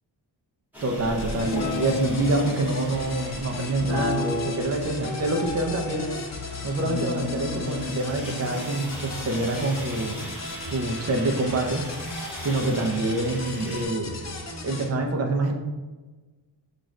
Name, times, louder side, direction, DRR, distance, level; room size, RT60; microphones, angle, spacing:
sound 1, 0.7-13.8, equal, 5° right, 1.5 m, -41 dB
voice 1, 0.8-6.2 6.6-10.2 10.6-11.8 12.4-14.1 14.6-15.5, right 2 dB, 35° right, 1 dB, 0.5 m, -26 dB
sound 2, 1.2-14.9, left 3 dB, 40° left, 0.6 m, -37 dB
Guitar, 1.3-2.6 3.8-4.7 5.0-6.2 6.8-10.3, left 4 dB, 70° left, 0.9 m, -32 dB
6.0 x 2.5 x 3.2 m, 1.2 s
wide cardioid pair, 140°, 44 cm